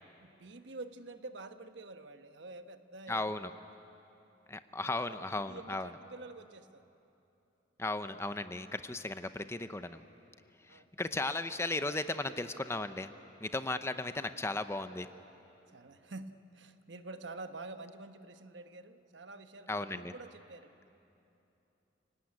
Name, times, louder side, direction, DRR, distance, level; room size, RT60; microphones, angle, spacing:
voice 1, 0.2-3.6 4.8-6.8 10.7-10.9 13.7-13.8 15.7-20.9, right 2 dB, 75° right, 8 dB, 1.2 m, -48 dB
voice 2, 3.1-3.5 4.5-5.9 7.8-10.0 10.7-13.1 13.4-15.1 19.7-20.1, left 2 dB, 15° left, 10 dB, 0.7 m, -36 dB
30.0 x 18.5 x 9.7 m, 2.9 s
head